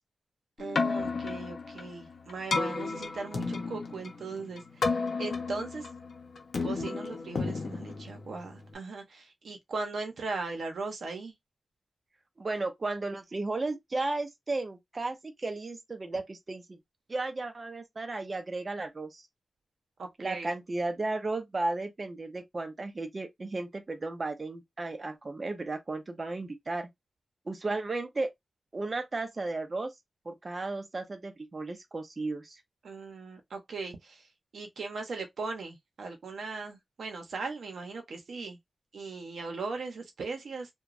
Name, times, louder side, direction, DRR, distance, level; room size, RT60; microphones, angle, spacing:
Keyboard (musical), 0.6-8.7, left 4 dB, 65° left, 0.7 m, -33 dB
voice 1, 0.6-4.9 5.2-5.8 6.6-11.3 20.0-20.5 32.8-34.2 34.5-38.6 38.9-40.7, right 4 dB, 85° right, 0.7 m, -38 dB
voice 2, 12.4-16.8 17.1-19.2 20.2-26.9 27.5-28.3 28.7-29.9 30.3-32.6, right 2 dB, 30° right, 0.6 m, -34 dB
2.9 x 2.2 x 2.4 m
wide cardioid pair, 165°, 0 cm